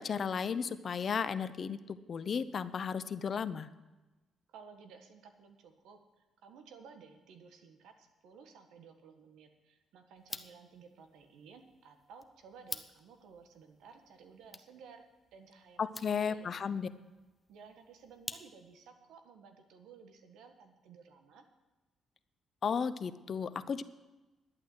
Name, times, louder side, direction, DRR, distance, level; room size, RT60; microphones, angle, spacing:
voice 1, 0.0-3.7 15.8-16.9 22.6-23.8, left 6 dB, 50° left, 14 dB, 0.7 m, -34 dB
voice 2, 4.5-15.0 15.3-16.7 17.5-21.4, right 5 dB, 85° right, 6 dB, 1.6 m, -56 dB
sound 1, 10.2-18.9, left 2 dB, 20° left, 0.8 m, -50 dB
11.5 x 8.7 x 7.9 m, 1.1 s
cardioid pair, 90°, 0 cm